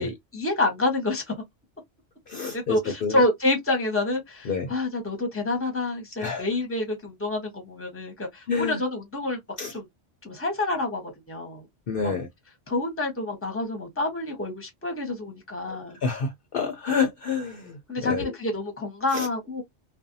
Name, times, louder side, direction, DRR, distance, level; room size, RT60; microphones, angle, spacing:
voice 1, 0.0-1.3 2.5-9.4 9.7-9.8 10.2-11.6 12.0-12.2 12.7-16.0 17.9-19.6, left 2 dB, 15° left, 0.8 m, -28 dB
voice 2, 2.3-3.2 4.5-4.7 6.2-6.5 8.5-8.8 9.6-9.7 11.9-12.3 15.6-18.3 19.1-19.3, left 5 dB, 60° left, 0.7 m, -28 dB
2.5 x 2.2 x 2.6 m
omnidirectional pair, 1.2 m